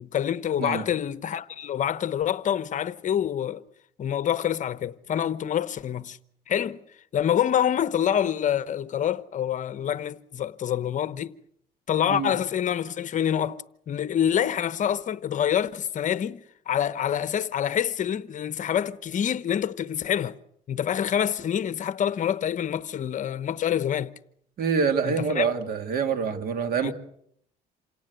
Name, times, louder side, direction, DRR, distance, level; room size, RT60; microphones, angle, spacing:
voice 1, 0.0-3.6 4.0-6.2 6.5-6.8 7.1-11.3 11.9-20.4 20.7-24.1 25.0-25.5 26.8-26.9, left 9 dB, 50° left, 1.0 m, -26 dB
voice 2, 24.6-26.9, right 6 dB, 65° right, 2.9 m, -26 dB
27.5 x 18.0 x 8.1 m
cardioid pair, 110°, 17 cm